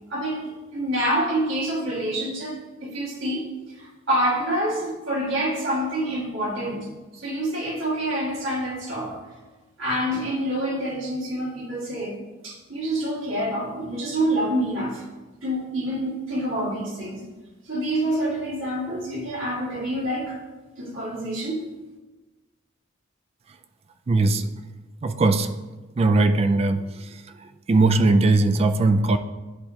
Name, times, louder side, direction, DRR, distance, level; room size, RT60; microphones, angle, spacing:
voice 1, 0.1-3.5 3.8-9.2 9.8-12.2 12.4-15.0 15.4-17.2 17.7-20.4 20.8-21.6, right 1 dB, 80° right, -4 dB, 1.8 m, -27 dB
voice 2, 24.1-24.5 25.0-25.5 26.0-26.8 27.7-29.2, right 2 dB, 30° right, 9 dB, 0.3 m, -19 dB
10.5 x 4.3 x 2.8 m, 1.2 s
head